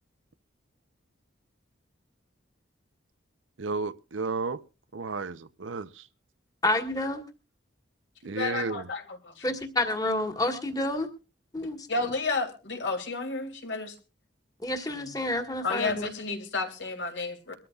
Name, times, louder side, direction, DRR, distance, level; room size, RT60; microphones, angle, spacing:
voice 1, 3.6-4.6 4.9-6.1 8.2-8.9, right 4 dB, 80° right, 0.8 m, -33 dB
voice 2, 6.6-7.2 9.4-11.1 11.5-11.9 14.6-16.1, left 2 dB, 20° left, 1.7 m, -29 dB
voice 3, 8.4-9.5 11.9-13.9 14.9-15.0 15.6-17.5, left 3 dB, 70° left, 2.8 m, -31 dB
23.5 x 13.5 x 2.4 m
head